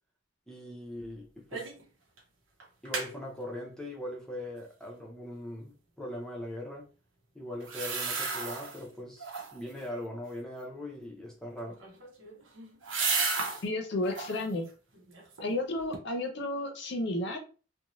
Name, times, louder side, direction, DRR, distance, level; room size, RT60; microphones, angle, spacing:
voice 1, 0.5-1.7 2.8-6.9 7.3-11.8, left 1 dB, 5° left, 0.6 m, -40 dB
sound 1, 1.5-1.9 2.2-2.3 2.6-3.1 7.6-8.8 9.2-9.7 11.7-13.6 14.0-14.5 14.9-15.6 15.9-16.0, right 4 dB, 85° right, 0.8 m, -33 dB
voice 2, 13.6-14.7 15.4-17.4, left 1 dB, 60° left, 0.6 m, -32 dB
2.6 x 2.2 x 3.0 m
head